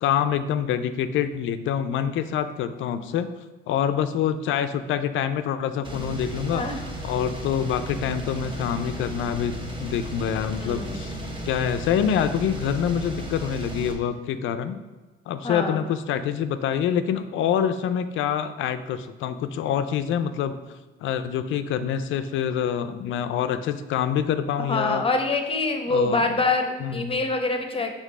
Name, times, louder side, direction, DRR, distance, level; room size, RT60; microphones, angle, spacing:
voice 1, 0.0-3.3 3.7-6.7 7.0-11.2 11.5-14.8 15.3-20.5 21.0-25.0 25.9-26.3 26.8-27.2, left 8 dB, 80° left, 10 dB, 0.4 m, -26 dB
sound 1, 5.8-13.9, right 1 dB, 25° right, 1.1 m, -35 dB
voice 2, 10.6-11.0 15.4-15.8 24.7-27.9, left 3 dB, 25° left, 5 dB, 0.8 m, -25 dB
5.1 x 3.5 x 5.4 m, 1.2 s
cardioid pair, 90°, 20 cm